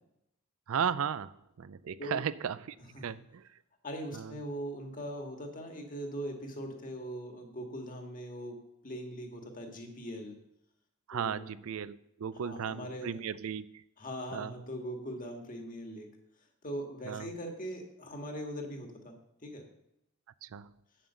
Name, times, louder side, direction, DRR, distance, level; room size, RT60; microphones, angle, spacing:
voice 1, 0.7-1.3 1.6-2.6 3.0-3.4 4.1-4.3 11.1-13.6 14.3-14.5 17.1-17.3 20.4-20.7, right 7 dB, 70° right, 16 dB, 0.4 m, -35 dB
voice 2, 3.8-8.6 8.8-10.4 11.1-11.5 12.4-13.2 14.0-16.1 16.6-19.1 19.4-19.6, equal, 40° left, 3 dB, 1.7 m, -41 dB
7.9 x 7.5 x 6.9 m, 0.81 s
head